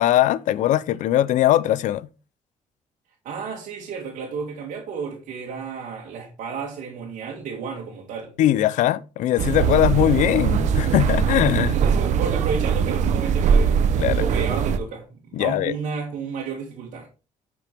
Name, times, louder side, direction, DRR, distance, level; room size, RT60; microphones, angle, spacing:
voice 1, 0.0-2.1 8.4-11.8 14.0-14.2 15.3-15.7, left 13 dB, 75° left, 0.5 m, -20 dB
voice 2, 3.2-8.3 11.5-13.8 14.2-17.1, right 5 dB, 85° right, 2.1 m, -32 dB
sound 1, 9.4-14.8, right 7 dB, 65° right, 0.7 m, -21 dB
9.9 x 6.0 x 3.4 m
cardioid pair, 170°, 13 cm